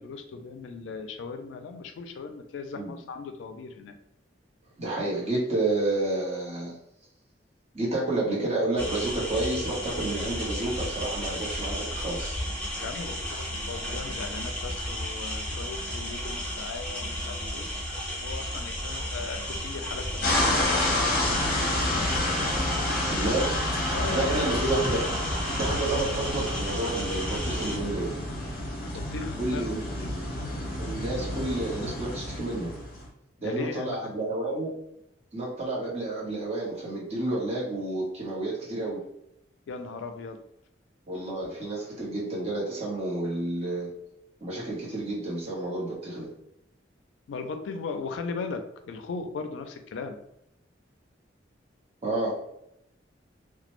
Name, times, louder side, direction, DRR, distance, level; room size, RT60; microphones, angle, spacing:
voice 1, 0.0-3.9 12.8-17.7 18.2-21.5 21.8-21.9 23.9-24.4 28.9-29.7 30.0-30.1 33.4-34.1 39.7-40.4 47.3-50.2, left 4 dB, 85° left, 7 dB, 0.3 m, -38 dB
voice 2, 4.8-6.8 7.7-12.4 22.0-22.2 23.1-23.5 24.1-25.1 25.6-28.1 29.4-29.8 30.8-32.7 33.4-34.7 35.3-39.0 41.1-43.9 44.4-46.3 52.0-52.3, right 2 dB, 35° right, -6 dB, 0.9 m, -30 dB
sound 1, 8.8-27.8, equal, 5° left, 0.6 m, -33 dB
sound 2, 20.2-33.0, left 1 dB, 50° left, 0.6 m, -29 dB
2.2 x 2.0 x 3.0 m, 0.79 s
head